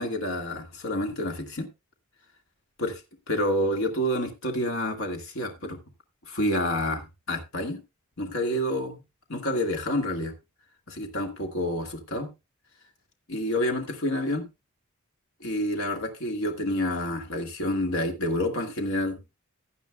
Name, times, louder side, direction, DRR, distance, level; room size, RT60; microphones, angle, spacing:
voice 1, 0.0-1.7 2.8-3.0 3.3-5.8 6.3-7.8 8.2-9.0 9.3-10.3 10.9-12.3 13.3-14.5 15.4-19.2, left 1 dB, 65° left, 1.8 m, -28 dB
16.0 x 9.4 x 2.2 m
head